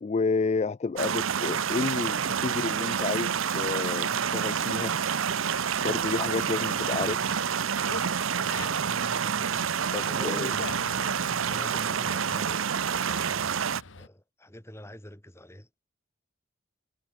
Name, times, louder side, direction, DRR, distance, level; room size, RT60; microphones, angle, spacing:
voice 1, 0.0-4.9 5.8-7.2 9.9-10.5, left 4 dB, 35° left, 0.3 m, -30 dB
sound 1, 1.0-13.8, right 7 dB, 80° right, 0.7 m, -28 dB
sound 2, 4.1-10.1, equal, 15° right, 6.5 m, -52 dB
Dog, 5.4-14.1, left 3 dB, 70° left, 1.5 m, -45 dB
voice 2, 10.0-11.1 11.4-15.7, left 1 dB, 15° left, 2.7 m, -46 dB
head